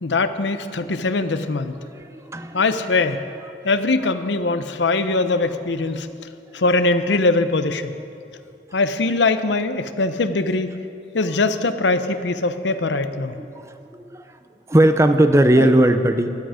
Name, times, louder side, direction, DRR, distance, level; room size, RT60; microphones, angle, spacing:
voice 1, 0.0-1.7 2.5-3.2 3.6-6.1 6.5-7.9 8.7-10.7 11.1-13.4 15.6-15.7, left 3 dB, 90° left, 10 dB, 0.7 m, -21 dB
voice 2, 1.9-2.6 13.3-13.7 14.1-14.2 14.7-16.3, right 1 dB, 15° right, 8 dB, 0.6 m, -17 dB
17.0 x 12.5 x 5.0 m, 2.6 s
head